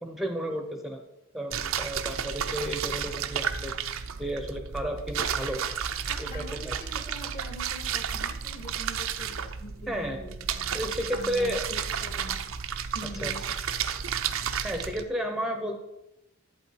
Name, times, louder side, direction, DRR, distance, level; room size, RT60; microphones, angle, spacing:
voice 1, 0.0-1.0 1.3-3.7 4.2-5.7 6.2-6.8 9.9-10.2 10.7-11.6 13.2-13.3 14.6-15.8, equal, ahead, 4 dB, 0.8 m, -32 dB
sound 1, 1.5-15.0, right 7 dB, 70° right, 0.6 m, -32 dB
voice 2, 6.0-12.5 12.9-13.4, equal, 45° left, 4 dB, 1.9 m, -44 dB
11.0 x 8.4 x 4.7 m, 0.90 s
head